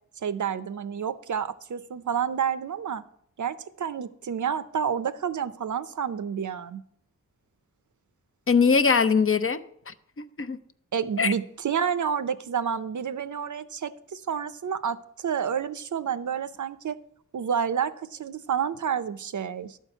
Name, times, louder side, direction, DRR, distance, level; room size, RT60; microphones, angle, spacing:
voice 1, 0.2-3.0 3.4-6.8 10.9-17.0 17.3-19.8, right 7 dB, 75° right, 0.6 m, -29 dB
voice 2, 8.5-9.6 9.9-10.6 11.2-11.3, left 5 dB, 45° left, 0.6 m, -22 dB
12.0 x 4.6 x 7.7 m
wide cardioid pair, 80°, 31 cm